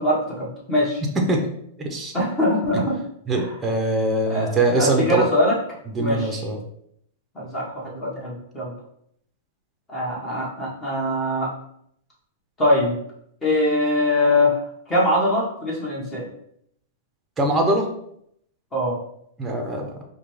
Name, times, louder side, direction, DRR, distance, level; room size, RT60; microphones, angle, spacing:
voice 1, 0.0-1.0 2.1-2.9 3.3-3.5 4.3-4.5 4.8-5.6 6.0-6.3 7.3-8.7 9.9-11.5 12.6-13.0 13.4-14.6 14.9-16.3 18.7-19.0, left 1 dB, 15° left, -4 dB, 1.3 m, -22 dB
voice 2, 1.2-1.5 1.8-2.1 2.7-2.8 3.3-5.3 5.9-6.6 17.4-17.9 19.4-19.9, right 2 dB, 15° right, 3 dB, 0.7 m, -22 dB
4.9 x 2.3 x 3.2 m, 0.72 s
hypercardioid pair, 145°, 0 cm